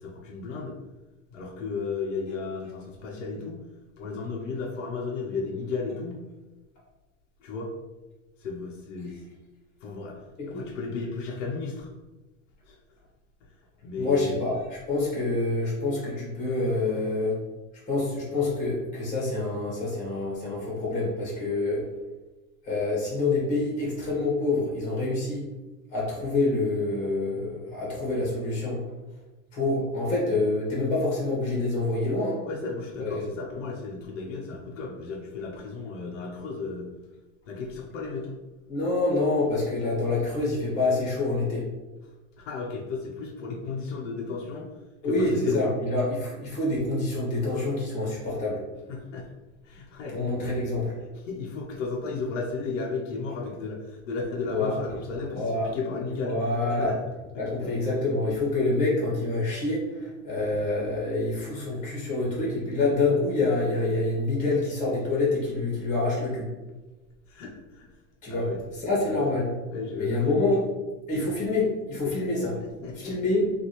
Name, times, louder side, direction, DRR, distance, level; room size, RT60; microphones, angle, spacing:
voice 1, 0.0-0.8 1.3-3.6 4.0-6.2 7.4-7.7 8.4-9.2 9.8-10.2 10.4-11.9 12.6-12.8 13.8-14.4 32.4-36.9 37.4-38.4 42.4-44.7 45.0-45.7 48.9-49.3 49.6-50.5 51.3-56.4 56.8-57.0 57.3-57.7 61.7-61.8 62.3-62.7 63.9-64.0 67.3-67.9 68.3-68.6 69.0-69.4 69.7-70.4 72.6-73.2, left 4 dB, 70° left, -1 dB, 0.9 m, -34 dB
voice 2, 14.0-17.3 17.9-21.8 22.6-25.5 25.9-28.8 29.5-32.4 33.0-33.3 38.7-41.7 45.0-48.6 50.1-50.9 54.5-54.7 55.3-55.7 56.2-56.9 57.4-66.5 68.2-68.5 68.8-69.5 70.0-70.7 71.1-72.5 72.9-73.6, left 2 dB, 20° left, -5 dB, 1.5 m, -26 dB
5.6 x 2.8 x 3.0 m, 1.1 s
supercardioid pair, 175°, 39 cm